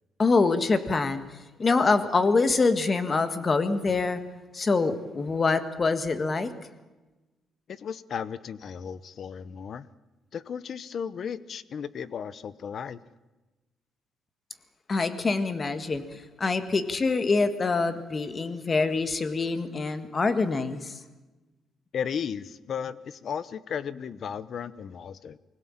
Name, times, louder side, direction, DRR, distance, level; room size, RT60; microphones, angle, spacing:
voice 1, 0.2-1.2 1.6-4.2 4.5-6.5 14.9-21.0, left 4 dB, 25° left, 11 dB, 1.8 m, -25 dB
voice 2, 7.7-9.9 10.3-13.0 21.9-25.4, left 7 dB, 50° left, 17 dB, 0.9 m, -35 dB
24.5 x 17.0 x 8.9 m, 1.1 s
cardioid pair, 145°, 0 cm